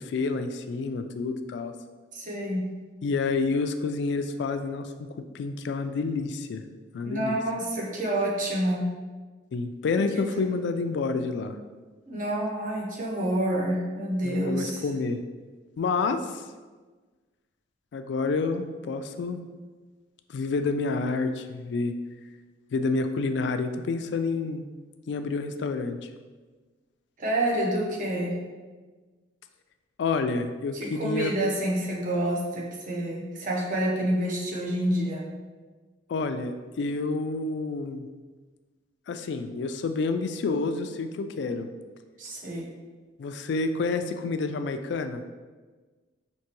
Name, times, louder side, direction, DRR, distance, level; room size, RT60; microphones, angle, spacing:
voice 1, 0.0-1.7 3.0-5.1 5.3-6.6 6.9-7.4 9.5-11.6 14.2-15.2 15.8-16.4 17.9-19.4 20.3-21.9 22.7-24.6 25.1-26.1 30.0-31.3 36.1-38.0 39.1-41.7 43.2-45.2, left 4 dB, 70° left, 8 dB, 0.3 m, -29 dB
voice 2, 2.1-2.6 7.0-8.8 9.9-10.0 10.3-10.4 12.1-14.8 27.2-28.3 30.7-35.2 42.2-42.7, right 1 dB, 45° right, -3 dB, 0.7 m, -28 dB
4.6 x 2.9 x 2.9 m, 1.4 s
head